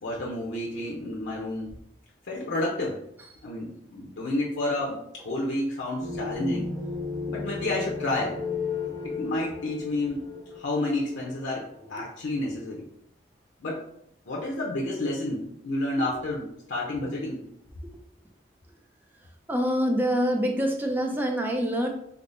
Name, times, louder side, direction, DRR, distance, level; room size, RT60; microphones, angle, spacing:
voice 1, 0.0-1.7 2.2-3.0 3.4-5.0 5.2-6.7 7.3-8.4 9.0-10.3 10.6-12.9 13.6-13.8 14.3-17.4, left 1 dB, 85° left, -2 dB, 0.6 m, -30 dB
sound 1, 6.0-11.8, left 4 dB, 45° right, 0.8 m, -34 dB
voice 2, 19.5-21.9, equal, 10° right, 2 dB, 0.4 m, -25 dB
3.5 x 2.0 x 3.8 m, 0.78 s
head